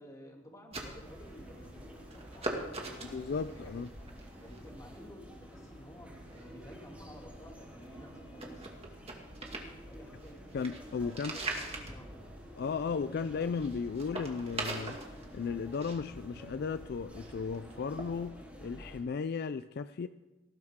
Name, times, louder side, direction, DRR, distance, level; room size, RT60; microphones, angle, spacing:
voice 1, 0.0-3.8 4.4-8.7 9.8-10.4 11.0-12.3 12.8-13.5, equal, 15° left, 0 dB, 2.6 m, -53 dB
sound 1, 0.7-18.3, right 2 dB, 30° right, 2.0 m, -44 dB
sound 2, 1.0-19.0, equal, 10° right, 4.4 m, -50 dB
voice 2, 3.0-3.9 10.5-11.4 12.6-15.0 15.3-20.1, left 5 dB, 55° left, 13 dB, 0.4 m, -35 dB
18.5 x 15.5 x 3.6 m, 1.1 s
head